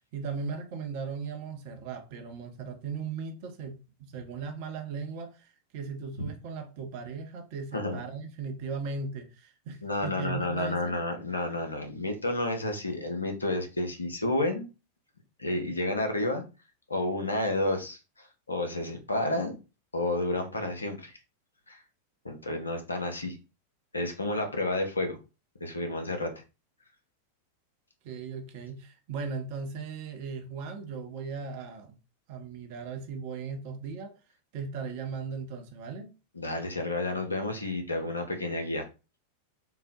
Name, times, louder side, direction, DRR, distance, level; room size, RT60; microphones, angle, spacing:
voice 1, 0.1-11.0 28.0-32.0 32.3-34.1 34.5-36.1, right 5 dB, 50° right, 0.6 m, -37 dB
voice 2, 9.8-14.7 15.4-16.4 16.9-19.6 19.9-21.1 21.7-21.8 22.2-23.4 23.9-25.2 25.6-26.3 36.4-38.9, left 2 dB, 80° left, 0.6 m, -30 dB
3.8 x 2.0 x 2.7 m
figure-of-eight pair, 90°, 0 cm